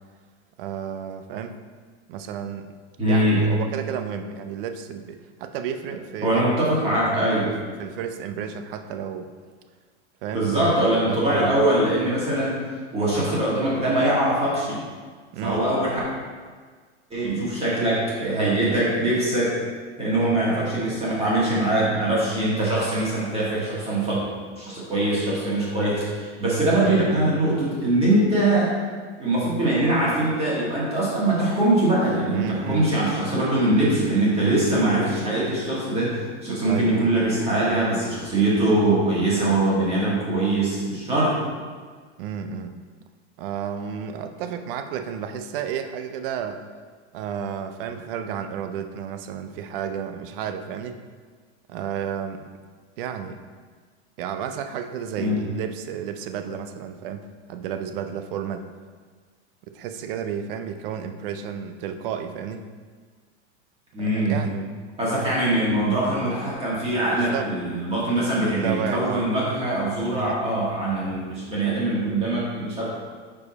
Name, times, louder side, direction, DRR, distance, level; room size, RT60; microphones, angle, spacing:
voice 1, 0.6-1.6 2.1-2.7 3.1-6.5 6.9-7.0 7.4-9.3 10.2-11.7 15.3-15.7 26.8-27.3 32.3-32.9 36.6-37.1 42.2-42.7 43.4-46.6 47.1-51.0 51.7-52.5 53.0-53.4 54.2-58.6 59.7-62.7 64.0-64.7 67.1-67.5 68.2-69.3 70.1-70.4, right 8 dB, 50° right, 8 dB, 0.5 m, -32 dB
voice 2, 3.0-3.4 6.2-7.5 10.3-12.5 12.9-14.8 15.4-16.0 17.1-19.5 20.0-24.2 24.5-28.7 29.2-41.3 55.2-55.4 63.9-64.4 65.0-72.9, right 1 dB, 15° right, -7 dB, 1.6 m, -22 dB
4.9 x 4.8 x 4.1 m, 1.6 s
supercardioid pair, 150°, 35 cm